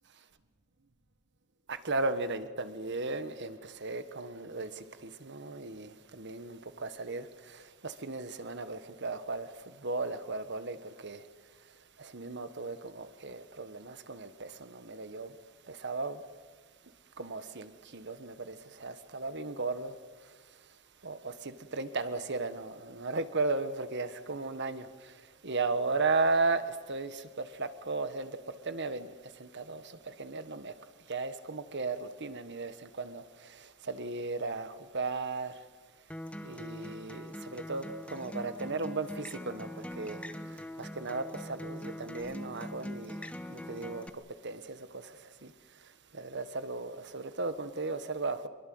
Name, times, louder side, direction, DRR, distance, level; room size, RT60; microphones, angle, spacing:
voice 1, 1.7-11.3 12.0-15.3 15.7-16.2 17.2-19.9 21.0-25.2 25.4-28.4 28.6-30.7 31.1-35.6 36.4-40.2 40.5-44.0 44.4-45.5 46.1-48.5, right 3 dB, 55° right, 1.4 m, -36 dB
Acoustic guitar, 36.1-44.1, equal, 5° left, 1.0 m, -42 dB
25.0 x 22.5 x 7.9 m
head